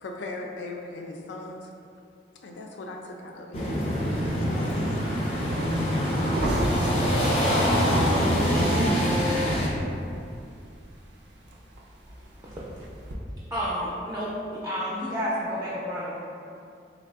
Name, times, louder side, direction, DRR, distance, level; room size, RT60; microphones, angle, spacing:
voice 1, 0.0-1.7 2.4-3.6 4.4-5.3, left 2 dB, 85° left, 0.4 m, -38 dB
sound 1, 3.5-9.7, equal, 35° left, 0.6 m, -25 dB
sound 2, 4.2-11.1 11.4-13.1, right 1 dB, 75° right, 0.4 m, -30 dB
voice 2, 5.5-6.9 7.8-8.9, equal, 90° right, 0.8 m, -32 dB
voice 3, 13.5-16.2, equal, 15° right, 0.4 m, -30 dB
3.4 x 2.0 x 3.4 m
head